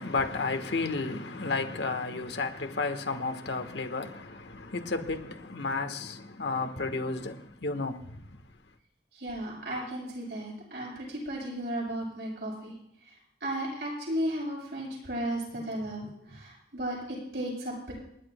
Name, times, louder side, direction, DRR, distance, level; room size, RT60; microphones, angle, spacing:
voice 1, 0.0-8.0, left 3 dB, 75° left, 1.2 m, -32 dB
voice 2, 9.1-12.7 13.4-17.9, right 1 dB, 65° right, 6.6 m, -34 dB
28.5 x 11.0 x 2.2 m
head